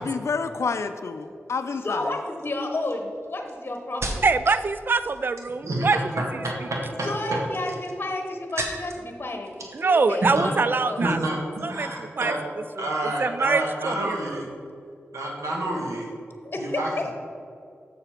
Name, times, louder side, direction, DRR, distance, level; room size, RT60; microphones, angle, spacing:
voice 1, 0.0-2.1, left 4 dB, 70° left, 8 dB, 0.4 m, -29 dB
sound 1, 1.2-1.5 2.3-4.7 4.9-5.5 6.7-9.1 9.4-10.1 10.4-10.6, right 2 dB, 60° right, 1.1 m, -37 dB
voice 2, 1.8-4.2 7.0-11.0 16.4-17.1, left 2 dB, 45° left, 4 dB, 1.0 m, -31 dB
voice 3, 4.2-6.0 9.7-11.2 11.6-12.3 12.8-12.9 13.2-14.4, right 4 dB, 45° right, 13 dB, 0.3 m, -24 dB
voice 4, 11.0-12.4 12.8-14.5 15.1-16.1 16.6-16.9, right 1 dB, 80° right, -1 dB, 1.6 m, -28 dB
6.9 x 6.5 x 4.5 m, 2.4 s
cardioid pair, 45°, 5 cm